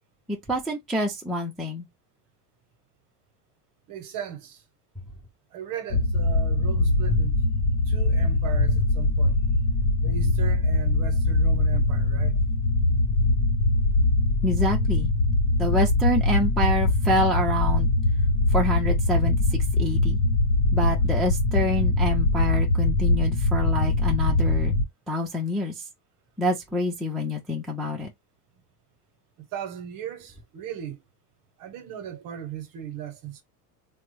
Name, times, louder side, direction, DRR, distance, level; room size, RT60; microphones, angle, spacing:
voice 1, 0.3-1.9 14.4-15.1 15.6-17.9 18.5-20.2 20.7-24.7 25.1-25.7 26.4-28.1, left 1 dB, ahead, 0.3 m, -27 dB
voice 2, 3.9-4.6 5.5-7.5 7.9-9.4 10.0-12.3 29.5-31.0 31.6-33.4, right 10 dB, 45° right, 0.8 m, -37 dB
sound 1, 5.9-24.8, left 2 dB, 70° left, 0.8 m, -22 dB
3.4 x 2.1 x 3.1 m
cardioid pair, 145°, 46 cm